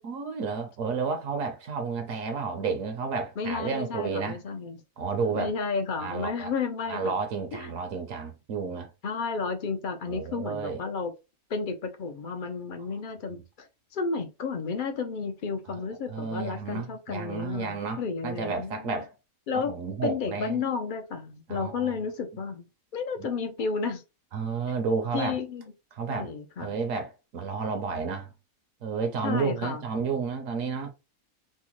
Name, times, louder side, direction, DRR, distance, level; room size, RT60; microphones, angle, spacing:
voice 1, 0.0-4.4 5.0-5.5 6.0-6.5 6.9-8.9 10.1-10.8 13.3-13.4 16.1-19.1 19.5-20.6 21.5-22.0 23.2-23.3 24.3-25.4 25.9-26.3 26.6-28.3 28.8-30.9, right 5 dB, 70° right, 1.0 m, -31 dB
voice 2, 3.4-4.8 5.3-7.1 7.5-7.7 9.0-11.1 11.5-13.7 13.9-19.0 19.5-19.7 20.0-22.7 22.9-24.0 25.1-25.7 26.1-26.7 29.2-29.8, left 5 dB, 65° left, 0.4 m, -32 dB
4.3 x 2.1 x 2.9 m
omnidirectional pair, 1.5 m